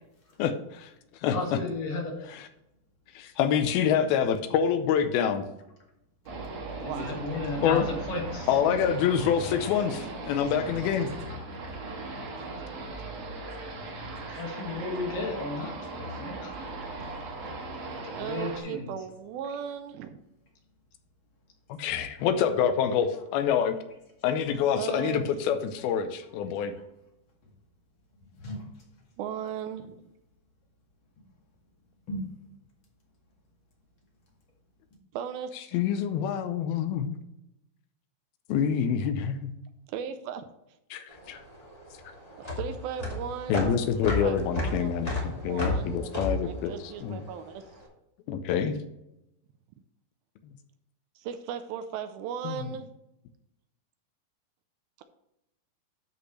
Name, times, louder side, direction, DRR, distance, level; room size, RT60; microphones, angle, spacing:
voice 1, 0.4-0.9 1.2-1.6 3.2-5.4 7.6-7.8 8.5-11.1 21.8-23.8 24.2-26.7 35.7-37.2 38.5-39.5 40.9-41.4 43.5-47.2 48.3-48.7 52.4-52.7, left 8 dB, 85° left, 8 dB, 2.5 m, -26 dB
voice 2, 1.3-2.2 6.8-8.6 14.4-16.5 17.9-18.9, left 3 dB, 65° left, 0 dB, 3.3 m, -34 dB
sound 1, 6.3-18.6, right 2 dB, 55° right, 2.3 m, -38 dB
voice 3, 6.7-7.3 18.1-20.2 24.7-25.3 29.2-30.0 35.1-35.8 39.9-40.4 42.4-43.7 44.0-44.9 45.4-46.1 46.4-47.6 51.2-52.9 55.0-55.1, right 8 dB, 85° right, 9 dB, 2.4 m, -37 dB
voice 4, 16.6-17.0 17.6-17.7 18.0-18.1 28.4-28.7 32.1-32.5, equal, 40° left, -1 dB, 2.1 m, -41 dB
sound 2, 41.1-47.6, left 2 dB, 20° left, 1.1 m, -32 dB
12.5 x 5.4 x 3.2 m, 0.85 s
omnidirectional pair, 4.4 m